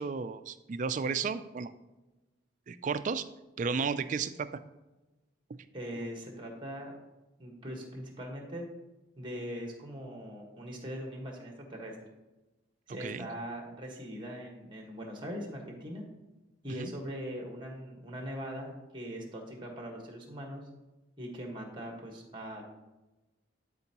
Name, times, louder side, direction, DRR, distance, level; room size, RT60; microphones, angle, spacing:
voice 1, 0.0-1.7 2.7-3.3 3.6-4.5 13.0-13.3 16.8-16.9, right 5 dB, 40° right, 11 dB, 0.3 m, -33 dB
voice 2, 5.7-6.9 7.4-8.7 9.2-11.9 12.9-16.0 16.6-20.6 21.2-22.6, equal, 25° right, 2 dB, 1.4 m, -41 dB
12.0 x 4.5 x 2.9 m, 1.1 s
head